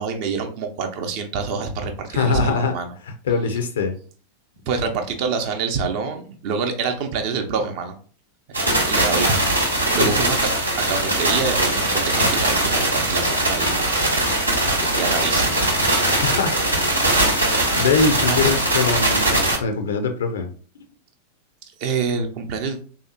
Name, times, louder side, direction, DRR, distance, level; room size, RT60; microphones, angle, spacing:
voice 1, 0.0-2.9 4.7-7.9 8.5-8.6 8.9-9.5 9.9-13.9 14.7-15.6 18.3-18.4 21.8-22.8, right 5 dB, 45° right, 5 dB, 0.6 m, -26 dB
voice 2, 2.1-2.7 3.1-3.9 10.0-10.1 16.1-16.6 17.7-20.5, left 4 dB, 65° left, 6 dB, 0.5 m, -22 dB
sound 1, 8.5-19.6, right 1 dB, 85° right, 0.9 m, -20 dB
3.4 x 2.8 x 2.6 m, 0.41 s
figure-of-eight pair, 90°, 0 cm